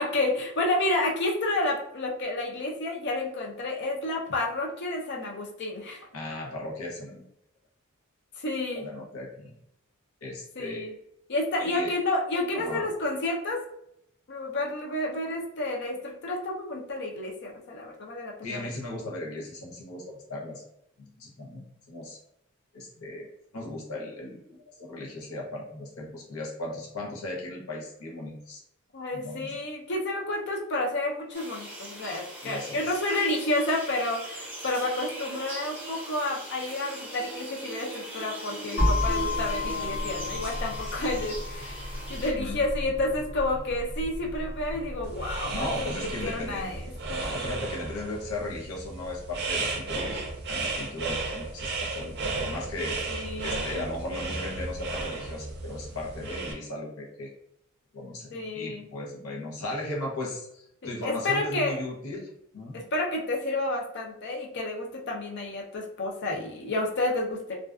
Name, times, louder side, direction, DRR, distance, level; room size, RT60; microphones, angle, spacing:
voice 1, 0.0-6.1 8.4-8.8 10.6-10.9 11.3-13.6 14.3-18.7 28.9-47.2 53.1-53.8 58.3-58.9 60.8-61.8 62.7-67.6, left 2 dB, 55° left, 0 dB, 0.5 m, -30 dB
voice 2, 6.1-7.2 8.7-9.6 10.2-10.9 11.6-11.9 12.5-12.9 18.4-20.6 21.0-22.2 22.7-23.3 23.5-28.6 29.1-29.6 32.4-33.0 42.4-42.6 45.5-46.7 47.2-50.2 50.5-57.3 57.9-62.8, left 2 dB, 85° left, -2 dB, 0.8 m, -37 dB
sound 1, 31.3-42.3, right 1 dB, 10° right, 0.7 m, -40 dB
sound 2, 38.8-46.6, left 2 dB, 35° left, 0.9 m, -32 dB
sound 3, 45.0-56.5, right 3 dB, 55° right, 0.4 m, -34 dB
2.4 x 2.2 x 2.3 m, 0.77 s
head